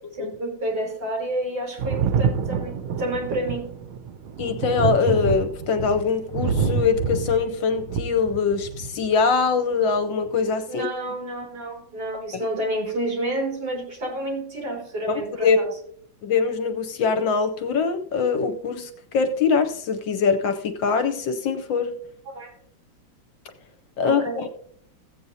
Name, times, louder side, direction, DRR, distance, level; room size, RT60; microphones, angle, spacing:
voice 1, 0.1-3.7 10.7-15.7 22.3-22.5 24.0-24.4, right 1 dB, 50° right, 1 dB, 4.7 m, -29 dB
Thunder, 1.8-9.1 10.3-10.4, right 5 dB, 85° right, 1.6 m, -27 dB
voice 2, 4.4-10.9 12.3-12.4 15.1-15.6 16.2-21.9 24.0-24.2, left 5 dB, 70° left, 8 dB, 1.4 m, -23 dB
15.5 x 8.4 x 2.7 m, 0.64 s
omnidirectional pair, 2.2 m